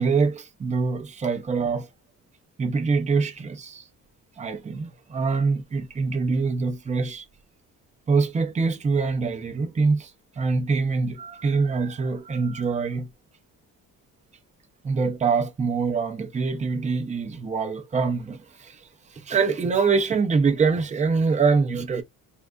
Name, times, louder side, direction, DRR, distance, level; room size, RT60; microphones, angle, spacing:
voice 1, 0.0-1.9 2.6-3.8 4.4-7.2 8.1-10.1 10.4-13.1 14.8-18.8 19.2-22.0, right 4 dB, 20° right, 0.6 m, -24 dB
3.6 x 3.3 x 2.3 m
cardioid pair, 155°, 34 cm